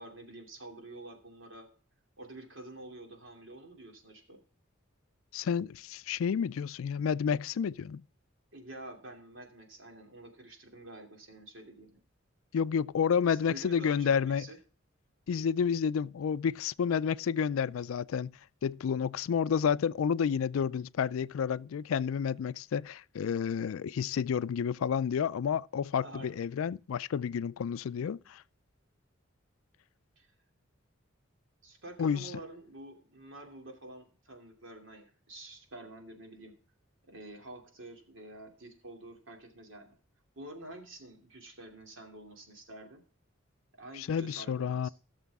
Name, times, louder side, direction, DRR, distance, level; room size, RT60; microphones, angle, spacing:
voice 1, 0.0-1.7 2.2-4.4 8.5-12.0 13.3-14.6 26.0-26.4 30.2-30.3 31.6-36.5 37.1-39.9 40.4-43.0 43.8-44.9, right 1 dB, 70° right, 2.7 m, -48 dB
voice 2, 5.3-8.0 12.5-14.5 15.3-18.3 18.6-28.4 32.0-32.3 43.9-44.9, left 7 dB, 90° left, 0.4 m, -30 dB
16.0 x 6.8 x 3.5 m
head